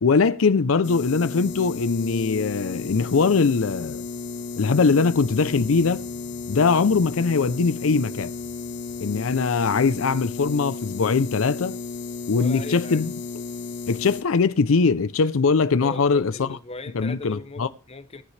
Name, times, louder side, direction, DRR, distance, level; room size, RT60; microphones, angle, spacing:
voice 1, 0.0-4.1 4.6-6.0 6.5-8.3 9.0-11.8 12.3-13.1 13.9-16.6 16.9-17.7, left 4 dB, 90° left, 0.5 m, -21 dB
sound 1, 0.8-14.2, left 4 dB, 60° left, 1.0 m, -34 dB
voice 2, 12.3-13.0 15.8-18.2, left 2 dB, 30° left, 0.8 m, -38 dB
22.0 x 10.0 x 3.3 m
head